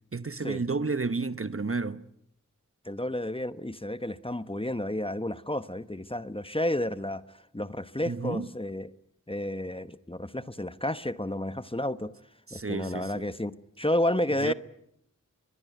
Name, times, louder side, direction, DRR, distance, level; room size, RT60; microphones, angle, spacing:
voice 1, 0.1-2.0 8.1-8.5 12.5-13.3 14.4-14.5, right 4 dB, 45° right, 1.0 m, -31 dB
voice 2, 2.8-7.2 7.5-8.9 9.3-12.1 12.5-14.5, left 1 dB, 15° left, 1.1 m, -31 dB
24.0 x 21.5 x 9.4 m
wide cardioid pair, 50°, 32 cm